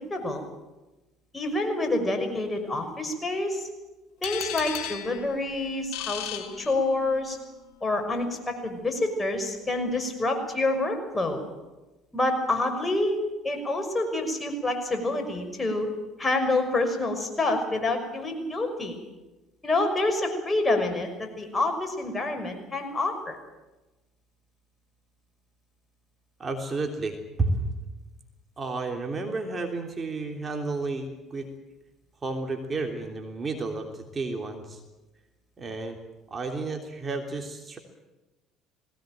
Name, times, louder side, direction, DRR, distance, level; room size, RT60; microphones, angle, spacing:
voice 1, 0.1-0.4 1.3-3.7 4.2-7.4 7.8-11.4 12.1-13.2 13.4-15.9 16.2-19.0 19.6-23.4, left 2 dB, 20° left, 4 dB, 5.9 m, -27 dB
sound 1, 4.2-7.2, left 10 dB, 70° left, 2.0 m, -36 dB
voice 2, 26.4-27.7 28.6-31.5 32.2-34.8 35.6-36.0 36.3-37.8, right 3 dB, 30° right, 3 dB, 3.2 m, -31 dB
20.5 x 18.0 x 9.1 m, 1.1 s
hypercardioid pair, 60°, 0 cm